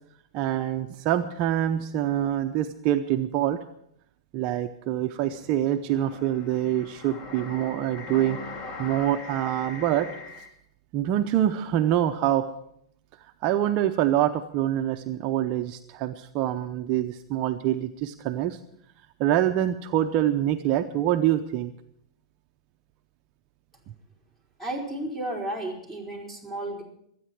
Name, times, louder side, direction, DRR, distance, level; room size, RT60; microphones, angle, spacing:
voice 1, 0.3-3.6 4.3-8.4 8.8-10.1 10.9-12.5 13.4-18.6 19.2-21.7, right 12 dB, 40° right, 7 dB, 0.7 m, -25 dB
sound 1, 5.3-10.5, left 3 dB, 40° left, 2.5 m, -41 dB
voice 2, 24.6-26.8, right 1 dB, 10° left, 0 dB, 5.1 m, -33 dB
25.5 x 9.4 x 4.6 m, 0.72 s
hypercardioid pair, 115°, 3 cm